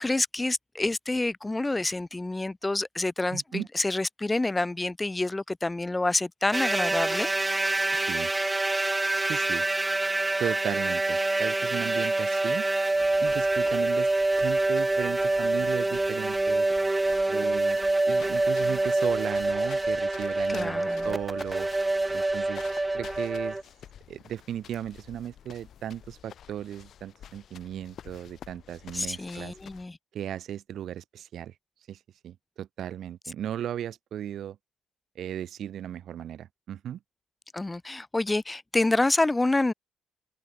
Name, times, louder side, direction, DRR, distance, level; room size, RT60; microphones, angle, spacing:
voice 1, 0.0-7.3 20.5-21.1 28.9-30.0 37.5-39.7, left 2 dB, 15° left, 1.9 m, -28 dB
voice 2, 3.3-3.7 7.9-8.3 9.1-9.6 10.4-12.7 13.2-14.1 14.4-16.7 17.3-17.8 18.0-21.7 22.1-22.7 22.9-23.6 24.1-29.5 30.1-31.5 31.9-34.6 35.1-37.0, right 10 dB, 70° right, 3.2 m, -36 dB
sound 1, 6.5-23.6, right 2 dB, 15° right, 1.5 m, -26 dB
sound 2, 12.9-29.9, left 9 dB, 65° left, 4.1 m, -50 dB
open air
cardioid pair, 90°, 0 cm